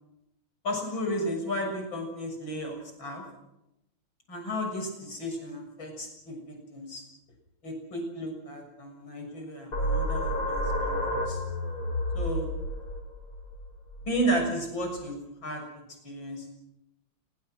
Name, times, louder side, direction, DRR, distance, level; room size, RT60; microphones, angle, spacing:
voice 1, 0.6-3.2 4.3-6.4 6.7-7.0 7.6-11.4 12.1-12.5 14.0-15.6 16.0-16.6, equal, 60° left, 3 dB, 7.7 m, -33 dB
sound 1, 9.7-15.0, equal, 90° left, 5.9 m, -31 dB
28.5 x 22.5 x 6.3 m, 0.89 s
omnidirectional pair, 2.4 m